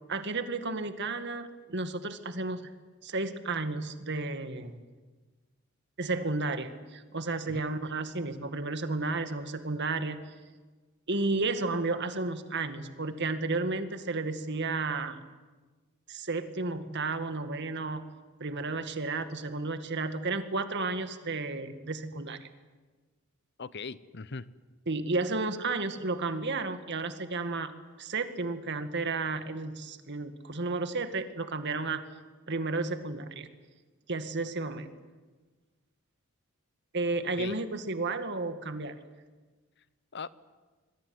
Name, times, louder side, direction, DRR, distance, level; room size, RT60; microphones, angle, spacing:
voice 1, 0.1-2.7 3.0-4.8 6.0-10.2 11.1-15.2 16.1-18.0 18.4-22.5 24.9-27.7 28.0-32.0 32.5-33.5 34.1-34.9 36.9-39.0, right 3 dB, 55° right, 9 dB, 2.1 m, -32 dB
voice 2, 23.6-24.5 37.4-37.6 40.1-40.3, left 4 dB, 55° left, 17 dB, 1.0 m, -39 dB
26.0 x 22.0 x 9.7 m, 1.3 s
head